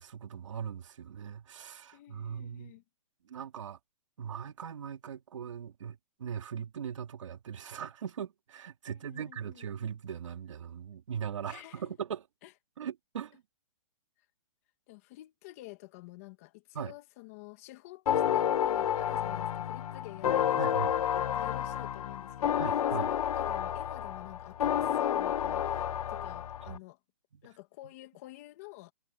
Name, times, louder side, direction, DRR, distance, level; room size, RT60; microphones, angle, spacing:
voice 1, 0.0-2.7 3.3-3.8 4.2-12.3 12.8-13.4 16.7-16.9 20.6-20.9 22.6-23.1 27.3-27.4, right 8 dB, 60° right, 2.8 m, -40 dB
voice 2, 1.9-2.8 8.9-9.7 11.5-11.9 12.4-12.5 14.9-20.6 20.9-27.0 27.4-28.9, left 19 dB, 25° left, 2.2 m, -50 dB
sound 1, 18.1-26.8, left 10 dB, 85° left, 0.5 m, -30 dB
hypercardioid pair, 175°, 18 cm